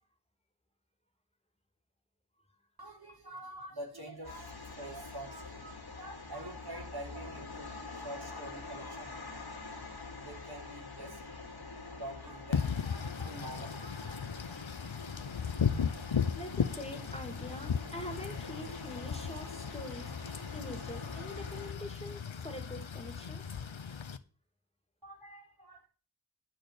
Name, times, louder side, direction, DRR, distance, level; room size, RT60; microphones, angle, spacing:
voice 1, 2.8-9.8 10.2-11.2 11.9-16.4 25.0-25.9, right 1 dB, 50° right, 3.4 m, -47 dB
sound 1, 4.2-21.7, left 3 dB, 55° left, 2.3 m, -46 dB
Wind / Rain, 12.5-24.2, left 7 dB, 75° left, 0.9 m, -36 dB
voice 2, 16.3-20.1 20.5-23.4, left 1 dB, 15° left, 2.7 m, -44 dB
10.5 x 4.5 x 7.9 m
wide cardioid pair, 40°, 46 cm